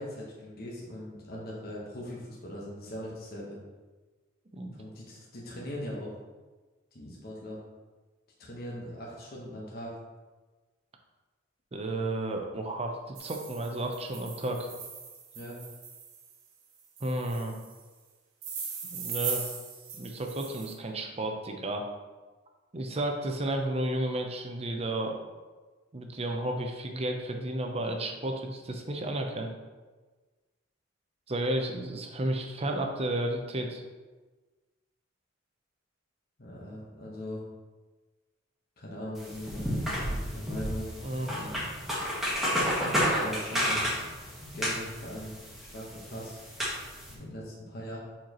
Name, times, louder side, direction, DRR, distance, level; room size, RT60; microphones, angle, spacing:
voice 1, 0.0-3.6 4.7-6.1 6.9-7.6 8.4-9.9 15.3-15.6 36.4-37.4 38.8-40.9 41.2-41.8 42.7-44.1 44.5-46.4 47.1-48.0, equal, 50° left, -3 dB, 1.2 m, -40 dB
voice 2, 11.7-14.7 17.0-17.6 18.9-19.4 20.0-21.9 22.7-25.2 25.9-29.5 31.3-33.8 41.0-41.5, right 1 dB, 30° right, 3 dB, 0.7 m, -32 dB
sound 1, 13.2-16.3 17.0-17.8 18.4-20.7, right 6 dB, 85° right, 1.1 m, -39 dB
sound 2, 39.2-47.1, equal, ahead, 1.4 m, -31 dB
7.4 x 4.4 x 3.0 m, 1.3 s
head